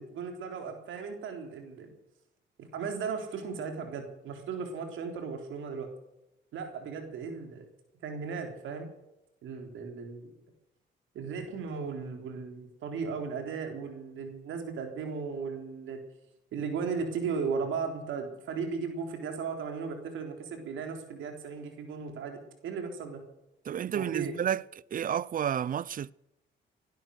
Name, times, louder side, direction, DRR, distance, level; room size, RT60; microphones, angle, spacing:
voice 1, 0.0-1.9 2.6-5.9 6.5-7.7 8.0-8.9 9.4-10.3 11.1-16.0 16.5-23.2 23.9-24.3, right 5 dB, 80° right, 3.7 m, -36 dB
voice 2, 23.7-24.6 24.9-26.1, right 9 dB, 45° right, 0.6 m, -30 dB
18.5 x 11.5 x 6.4 m
cardioid pair, 90°, 20 cm